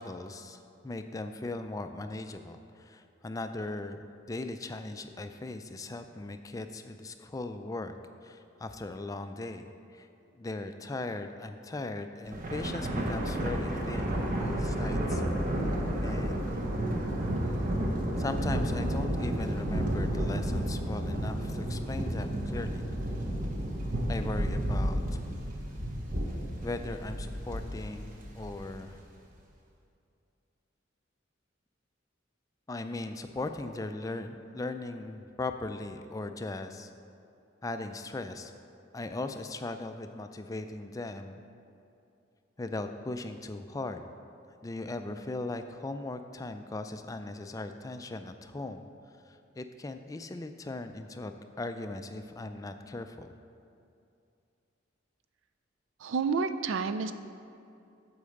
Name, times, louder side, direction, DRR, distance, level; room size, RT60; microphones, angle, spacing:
voice 1, 0.0-8.0 8.2-10.1 10.3-15.2 16.0-16.5 18.2-22.8 24.1-25.2 26.6-29.0 32.7-36.9 37.6-38.5 38.9-41.4 42.6-44.0 44.6-48.8 49.2-51.3 51.6-53.3, left 2 dB, 15° left, 8 dB, 0.3 m, -38 dB
Thunder, 12.3-28.9, right 1 dB, 45° right, 1.0 m, -31 dB
voice 2, 56.0-57.1, right 5 dB, 80° right, 10 dB, 0.4 m, -29 dB
8.5 x 4.7 x 6.5 m, 2.6 s
head